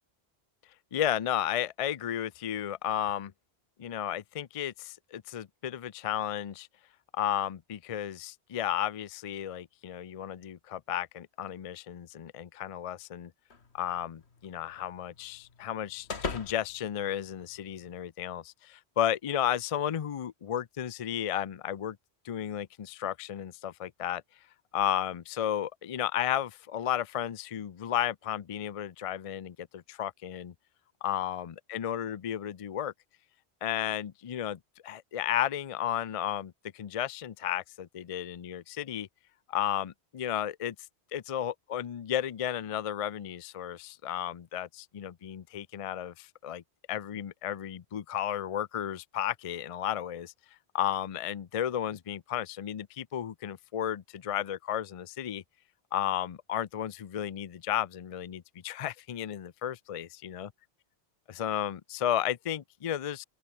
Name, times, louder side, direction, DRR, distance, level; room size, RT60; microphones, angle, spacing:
voice 1, 0.9-3.3 3.8-6.7 7.1-13.3 13.7-22.0 22.2-24.2 24.7-30.5 31.0-32.9 33.6-39.1 39.5-40.7 41.1-46.6 46.9-50.3 50.7-55.4 55.9-60.5 61.3-63.2, left 10 dB, 45° left, 0.5 m, -33 dB
sound 1, 13.5-17.9, left 4 dB, 85° left, 2.2 m, -43 dB
open air
omnidirectional pair, 1.1 m